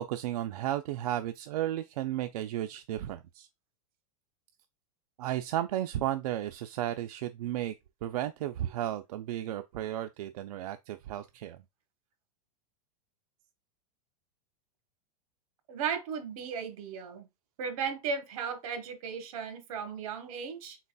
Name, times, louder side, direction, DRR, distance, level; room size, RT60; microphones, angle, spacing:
voice 1, 0.0-3.5 5.2-7.7 8.0-11.6, right 12 dB, 85° right, 0.4 m, -34 dB
voice 2, 15.7-17.3 17.6-20.8, right 6 dB, 65° right, 1.2 m, -35 dB
4.0 x 3.9 x 2.2 m
supercardioid pair, 155°, 19 cm